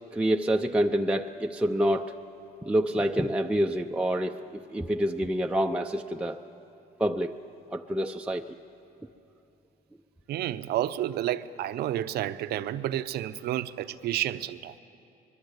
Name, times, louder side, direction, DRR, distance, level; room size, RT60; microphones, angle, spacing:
voice 1, 0.1-2.1 2.6-6.4 7.0-7.4 7.7-8.4, right 1 dB, 5° right, 0.6 m, -27 dB
voice 2, 10.3-14.7, right 12 dB, 70° right, 0.8 m, -30 dB
25.0 x 21.5 x 8.1 m
cardioid pair, 110°, 17 cm